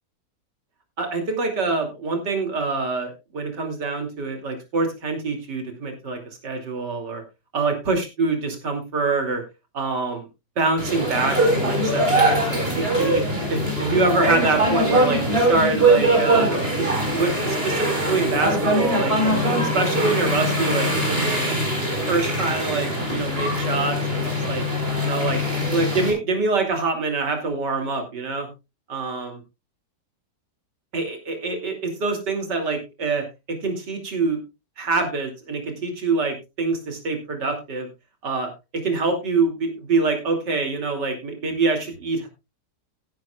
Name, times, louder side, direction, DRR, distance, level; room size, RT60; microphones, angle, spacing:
voice 1, 1.0-7.2 7.5-9.4 9.7-10.3 10.6-13.2 13.5-16.5 16.8-19.3 19.6-21.6 22.1-24.6 25.0-28.5 28.9-29.3 30.9-34.4 34.8-37.9 38.2-42.3, right 3 dB, 85° right, 4 dB, 3.3 m, -25 dB
sound 1, 10.8-26.1, right 1 dB, 35° right, 4.7 m, -22 dB
15.5 x 11.5 x 2.3 m, 0.26 s
omnidirectional pair, 1.8 m